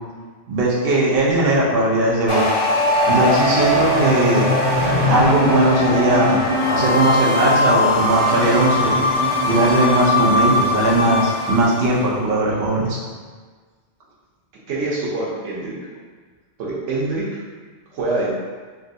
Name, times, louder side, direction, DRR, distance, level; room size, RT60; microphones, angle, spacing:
voice 1, 0.5-2.4 3.1-4.5 5.1-6.4 6.7-9.0 9.4-13.0, right 1 dB, 60° right, -5 dB, 0.8 m, -18 dB
sound 1, 2.3-11.9, left 1 dB, 70° left, 1.2 m, -19 dB
voice 2, 14.7-15.8 16.6-17.4 17.9-18.3, right 2 dB, 85° right, -6 dB, 1.1 m, -25 dB
3.4 x 2.3 x 2.6 m, 1.5 s
omnidirectional pair, 1.2 m